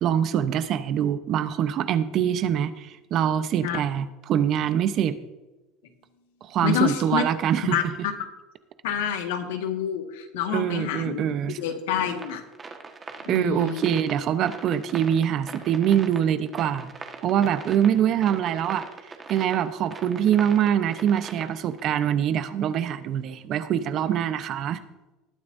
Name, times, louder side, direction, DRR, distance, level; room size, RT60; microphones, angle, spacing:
voice 1, 0.0-5.1 6.4-7.8 10.5-11.6 13.3-16.9 17.2-18.9 19.3-24.8, right 9 dB, 50° right, 12 dB, 0.9 m, -24 dB
voice 2, 6.6-7.2 7.6-8.1 8.8-11.2 11.6-12.4 13.2-13.9, left 9 dB, 85° left, 5 dB, 1.7 m, -28 dB
sound 1, 12.1-21.9, right 4 dB, 25° right, 1.5 m, -41 dB
19.5 x 9.4 x 2.7 m, 1.1 s
supercardioid pair, 110°, 0 cm